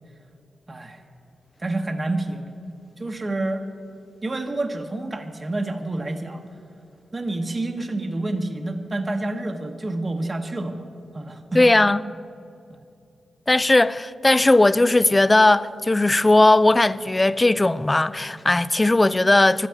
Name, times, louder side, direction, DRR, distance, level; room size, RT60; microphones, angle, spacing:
voice 1, 0.7-1.0 1.6-2.6 3.0-3.6 4.2-6.4 7.1-10.8 11.1-11.6 12.7-12.8, right 2 dB, 25° right, 0.9 m, -28 dB
voice 2, 11.5-12.0 13.5-19.7, left 2 dB, 15° left, 0.3 m, -17 dB
12.5 x 9.1 x 9.0 m
wide cardioid pair, 145°, 0 cm